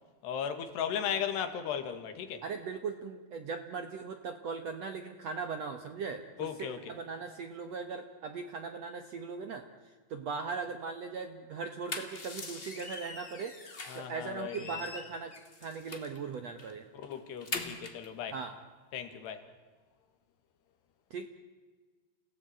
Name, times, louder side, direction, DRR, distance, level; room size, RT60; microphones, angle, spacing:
voice 1, 0.2-2.4 6.4-7.0 13.9-14.9 17.0-18.4 18.9-19.5, left 8 dB, 90° left, 4.0 m, -36 dB
voice 2, 2.4-9.6 10.1-13.5 13.9-15.3 15.6-16.9 18.3-18.5 21.1-21.3, right 5 dB, 65° right, 1.6 m, -39 dB
sound 1, 11.6-14.1 14.5-16.2 16.6-16.7 17.0-18.1, left 3 dB, 50° left, 0.6 m, -42 dB
29.5 x 17.0 x 8.9 m
omnidirectional pair, 4.7 m